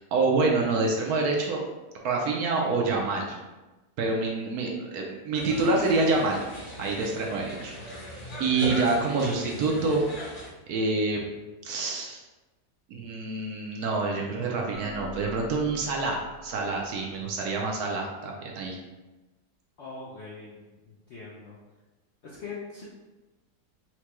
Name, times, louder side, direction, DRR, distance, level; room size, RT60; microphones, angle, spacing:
voice 1, 0.1-1.6 2.0-3.4 4.0-6.4 6.8-8.1 8.4-10.0 10.7-11.2 11.6-12.2 12.9-18.8, right 3 dB, 70° right, -1 dB, 1.0 m, -27 dB
sound 1, 5.4-10.5, equal, 55° left, 1.3 m, -38 dB
sound 2, 14.7-17.8, right 1 dB, 5° left, 0.4 m, -46 dB
voice 2, 19.8-21.6 22.2-22.9, left 4 dB, 70° left, -5 dB, 0.6 m, -42 dB
4.5 x 2.2 x 2.9 m, 1.1 s
omnidirectional pair, 1.8 m